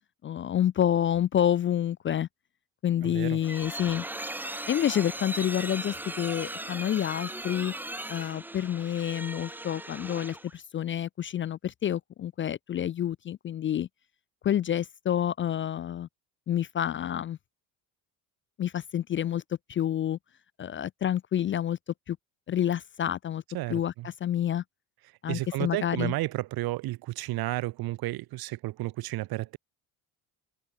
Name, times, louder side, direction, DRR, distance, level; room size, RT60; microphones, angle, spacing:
voice 1, 0.2-2.3 2.8-4.1 4.7-7.7 8.1-13.9 14.4-16.1 16.5-17.4 18.6-19.4 19.7-20.2 20.6-21.8 22.1-22.2 22.5-23.4 23.7-24.6 25.2-26.1, left 10 dB, 30° left, 0.4 m, -28 dB
sound 1, 3.0-10.6, right 1 dB, 5° right, 0.8 m, -38 dB
voice 2, 3.0-3.4 23.5-24.1 25.3-29.6, right 18 dB, 60° right, 0.9 m, -32 dB
cardioid pair, 100°, 41 cm